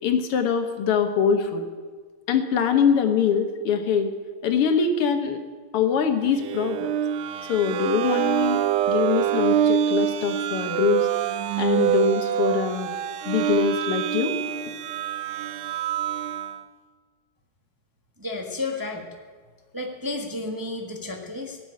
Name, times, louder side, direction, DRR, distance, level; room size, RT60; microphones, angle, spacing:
voice 1, 0.0-1.6 2.3-4.1 4.4-5.4 5.7-6.9 7.5-8.6 8.9-11.1 11.6-12.9 13.2-14.3, left 7 dB, 90° left, 6 dB, 2.1 m, -23 dB
sound 1, 6.3-16.6, right 10 dB, 85° right, 1.5 m, -25 dB
voice 2, 18.2-19.1 19.7-21.6, left 2 dB, 15° right, 1 dB, 1.0 m, -32 dB
17.5 x 6.2 x 9.4 m, 1.5 s
omnidirectional pair, 2.4 m